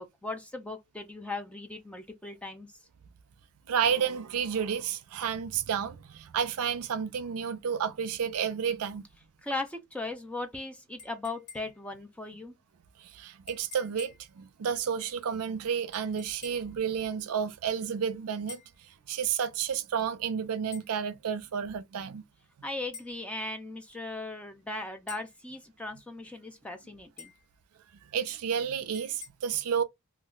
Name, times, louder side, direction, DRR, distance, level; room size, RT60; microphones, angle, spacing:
voice 1, 0.0-2.7 9.4-12.5 22.6-27.3, left 2 dB, 5° left, 0.4 m, -38 dB
voice 2, 3.7-9.1 13.0-18.6 19.1-22.2 28.1-29.8, right 7 dB, 80° right, 0.4 m, -31 dB
sound 1, 11.0-11.9 13.5-14.3 15.9-16.7 18.5-18.8 20.7-20.9 22.9-23.2 25.1-25.4 27.2-27.5 28.9-29.3, left 6 dB, 85° left, 1.0 m, -48 dB
2.3 x 2.1 x 3.6 m
head